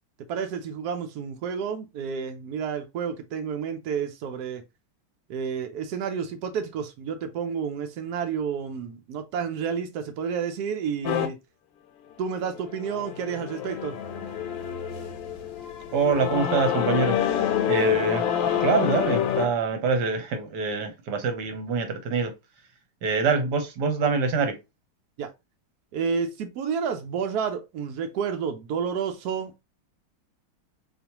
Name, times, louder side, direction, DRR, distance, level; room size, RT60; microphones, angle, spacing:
voice 1, 0.3-4.6 5.3-11.4 12.2-14.0 25.2-25.3 25.9-29.6, right 6 dB, 80° right, 0.9 m, -30 dB
sound 1, 11.0-11.3 12.4-19.5, left 9 dB, 70° left, 1.3 m, -27 dB
voice 2, 15.9-17.2 17.7-22.3 23.0-24.6, right 5 dB, 60° right, 1.2 m, -25 dB
4.1 x 3.1 x 2.9 m
omnidirectional pair, 2.4 m